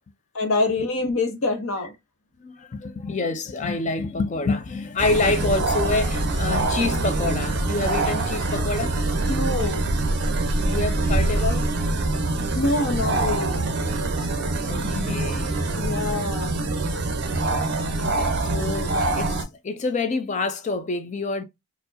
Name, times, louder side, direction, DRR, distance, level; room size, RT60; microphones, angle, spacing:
voice 1, 0.3-1.9 9.3-9.9 12.5-13.6 15.7-16.6, left 2 dB, 65° left, 0.8 m, -25 dB
voice 2, 2.4-9.0 10.7-11.7 14.0-14.1 14.7-15.9 18.4-21.4, left 3 dB, 30° left, 0.4 m, -27 dB
sound 1, 5.0-19.4, right 2 dB, 50° right, 0.6 m, -24 dB
4.5 x 2.1 x 2.5 m
head